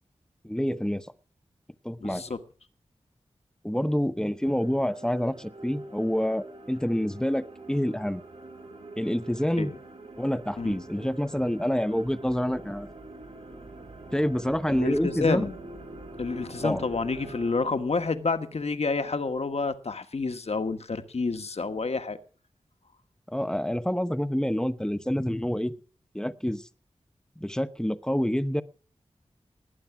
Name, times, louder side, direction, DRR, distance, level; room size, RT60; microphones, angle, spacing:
voice 1, 0.4-1.1 1.8-2.2 3.6-8.2 9.0-9.7 10.2-12.9 14.1-15.4 16.6-16.8 23.3-25.7 26.1-26.6 27.4-28.6, equal, 5° left, 1.1 m, -27 dB
voice 2, 2.0-2.4 9.6-9.8 10.6-10.8 14.7-15.5 16.2-22.2, left 4 dB, 65° left, 1.4 m, -29 dB
sound 1, 4.4-17.5, right 2 dB, 70° right, 5.3 m, -44 dB
19.5 x 8.7 x 6.0 m
cardioid pair, 40°, 12 cm